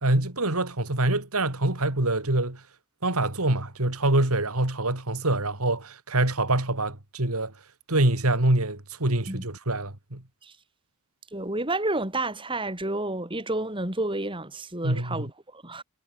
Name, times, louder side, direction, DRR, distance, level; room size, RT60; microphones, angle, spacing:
voice 1, 0.0-2.6 3.0-7.5 7.9-10.2 14.8-15.3, right 2 dB, 80° right, 3.4 m, -25 dB
voice 2, 11.3-15.8, right 2 dB, 20° right, 4.2 m, -30 dB
head